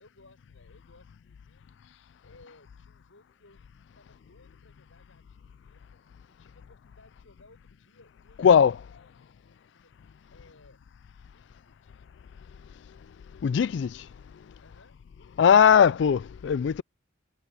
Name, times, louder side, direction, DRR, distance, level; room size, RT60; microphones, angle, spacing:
voice 1, 0.0-1.8 2.2-3.7 3.9-6.0 6.3-10.0 10.3-10.8 11.3-11.9 14.6-15.5 15.8-16.1, left 2 dB, 80° left, 7.8 m, -60 dB
voice 2, 8.4-8.8 13.4-13.9 15.4-16.8, left 7 dB, 60° left, 0.3 m, -19 dB
head